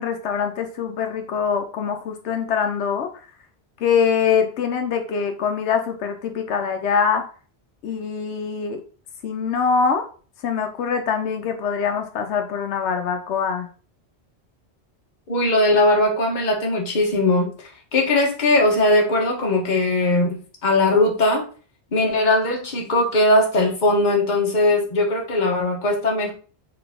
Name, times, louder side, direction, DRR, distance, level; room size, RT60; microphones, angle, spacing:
voice 1, 0.0-3.1 3.8-7.2 7.8-8.8 9.2-10.0 10.4-13.7, left 6 dB, 85° left, 6 dB, 0.9 m, -23 dB
voice 2, 15.3-17.5 17.9-21.4 21.9-26.3, left 2 dB, 45° left, 1 dB, 1.1 m, -19 dB
3.9 x 3.3 x 3.5 m, 0.39 s
omnidirectional pair, 1.1 m